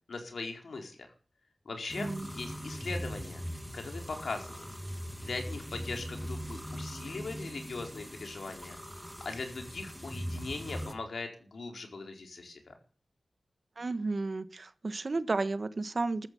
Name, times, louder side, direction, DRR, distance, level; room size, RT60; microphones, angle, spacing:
voice 1, 0.1-1.0 1.6-3.4 3.7-4.7 5.2-8.8 9.2-12.7, left 3 dB, 85° left, 3 dB, 4.7 m, -40 dB
sound 1, 1.9-10.9, equal, 5° left, 2.3 m, -40 dB
voice 2, 2.0-2.3 13.8-16.3, right 3 dB, 50° right, 12 dB, 1.4 m, -33 dB
14.5 x 14.0 x 7.1 m, 0.40 s
wide cardioid pair, 85°, 0 cm